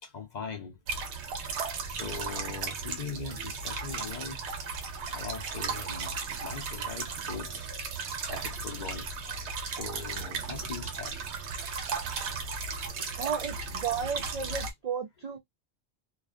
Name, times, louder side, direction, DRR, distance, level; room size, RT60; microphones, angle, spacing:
voice 1, 0.0-0.8 1.8-4.5 5.1-7.8 8.3-11.2 12.9-13.1, left 5 dB, 50° left, 0.6 m, -41 dB
sound 1, 0.9-14.7, right 5 dB, 90° right, 0.9 m, -35 dB
voice 2, 13.2-15.4, right 6 dB, 50° right, 0.5 m, -33 dB
2.4 x 2.1 x 2.4 m
omnidirectional pair, 1.1 m